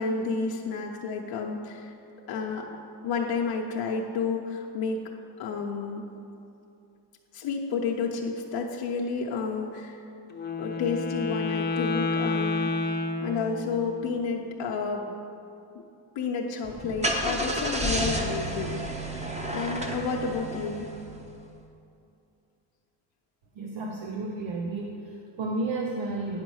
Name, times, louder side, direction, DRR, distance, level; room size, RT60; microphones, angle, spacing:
voice 1, 0.0-2.0 2.3-2.7 3.0-5.0 5.4-6.1 7.3-10.0 10.6-12.7 13.2-15.1 16.1-19.1 19.5-20.9, left 5 dB, 85° left, -1 dB, 0.9 m, -30 dB
Wind instrument woodwind instrument, 10.3-13.9, left 3 dB, 25° left, 0.7 m, -29 dB
Car / Engine starting, 16.6-21.3, right 1 dB, 15° right, 0.8 m, -31 dB
voice 2, 23.6-26.4, right 2 dB, 80° right, 2 dB, 0.8 m, -32 dB
9.6 x 5.2 x 6.3 m, 2.7 s
cardioid pair, 125°, 44 cm